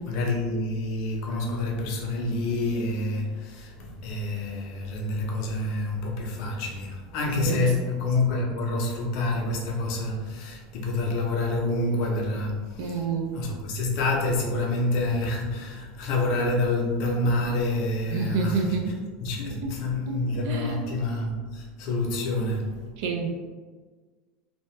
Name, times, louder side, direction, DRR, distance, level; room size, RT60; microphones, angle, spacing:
voice 1, 0.1-12.9 13.3-18.7 19.2-22.7, left 2 dB, 50° left, 0 dB, 0.6 m, -27 dB
voice 2, 12.8-13.4 18.1-19.0 19.6-19.8 20.0-20.2 20.4-20.8 23.0-23.3, right 5 dB, 60° right, 3 dB, 0.4 m, -28 dB
2.7 x 2.2 x 3.1 m, 1.4 s
supercardioid pair, 160°, 0 cm